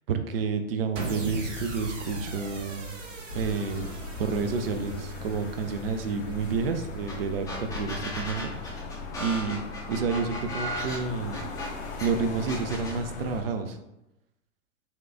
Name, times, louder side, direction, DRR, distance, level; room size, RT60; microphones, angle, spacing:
voice 1, 0.1-2.9 3.3-7.5 7.7-8.8 9.2-9.6 9.9-11.4 12.0-13.8, right 5 dB, 45° right, 6 dB, 0.5 m, -30 dB
sound 1, 1.0-7.3, right 2 dB, 60° right, 1.0 m, -39 dB
sound 2, 3.3-13.4, left 3 dB, 50° left, 0.8 m, -38 dB
sound 3, 7.1-7.2 7.5-12.1 12.5-13.0, equal, 10° left, 0.6 m, -36 dB
4.3 x 2.3 x 3.5 m, 0.90 s
figure-of-eight pair, 105°, 42 cm